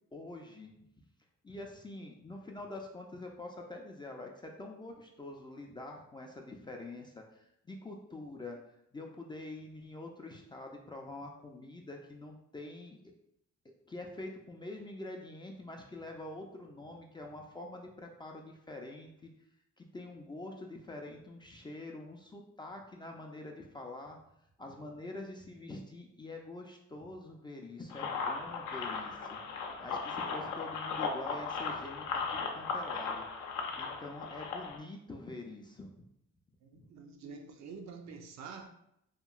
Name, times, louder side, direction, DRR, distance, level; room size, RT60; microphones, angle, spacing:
voice 1, 0.1-0.8 1.4-8.6 8.9-13.0 13.9-19.3 19.8-24.2 24.6-29.4 29.8-33.3 33.8-35.9 36.7-36.9, left 2 dB, 15° left, 0.3 m, -45 dB
sound 1, 27.9-34.8, left 5 dB, 75° left, 0.6 m, -37 dB
voice 2, 36.6-38.7, right 5 dB, 65° right, 0.5 m, -47 dB
2.9 x 2.5 x 2.3 m
cardioid pair, 90°, 30 cm